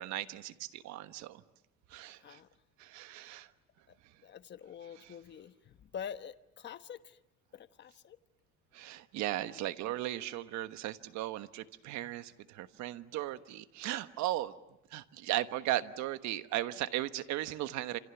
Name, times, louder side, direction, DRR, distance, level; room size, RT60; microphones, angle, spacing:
voice 1, 0.0-1.4 1.9-2.4 2.8-3.5 5.0-5.1 8.7-14.5 14.9-18.0, right 14 dB, 70° right, 11 dB, 1.3 m, -37 dB
voice 2, 4.2-5.5 5.9-7.0 7.5-8.2, left 8 dB, 35° left, 10 dB, 1.2 m, -45 dB
29.0 x 27.5 x 7.1 m, 0.89 s
cardioid pair, 125°, 29 cm